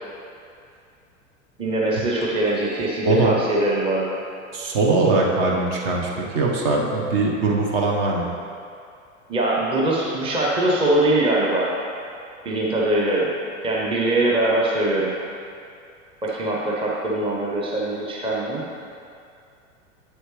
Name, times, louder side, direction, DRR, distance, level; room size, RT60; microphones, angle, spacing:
voice 1, 1.6-4.2 9.3-11.7 12.4-13.3 13.6-15.1 16.2-18.7, right 1 dB, 15° right, -4 dB, 0.9 m, -22 dB
voice 2, 3.0-3.4 4.5-8.3, right 3 dB, 45° right, -1 dB, 1.3 m, -21 dB
8.2 x 7.8 x 3.2 m, 2.4 s
figure-of-eight pair, 90°, 40 cm